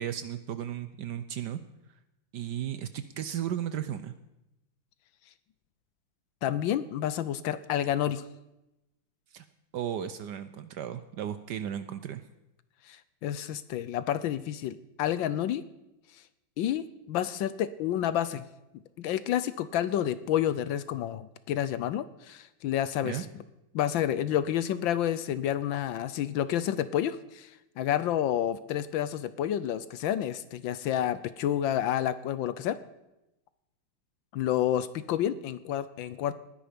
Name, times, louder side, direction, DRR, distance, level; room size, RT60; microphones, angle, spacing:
voice 1, 0.0-1.6 2.3-4.1 9.3-9.4 9.7-12.2 23.0-23.2, right 10 dB, 70° right, 12 dB, 1.0 m, -35 dB
voice 2, 6.4-8.2 12.8-15.6 16.6-18.4 19.0-23.3 23.7-32.8 34.3-36.3, left 11 dB, 70° left, 15 dB, 1.3 m, -29 dB
19.5 x 10.5 x 5.1 m, 0.92 s
omnidirectional pair, 2.3 m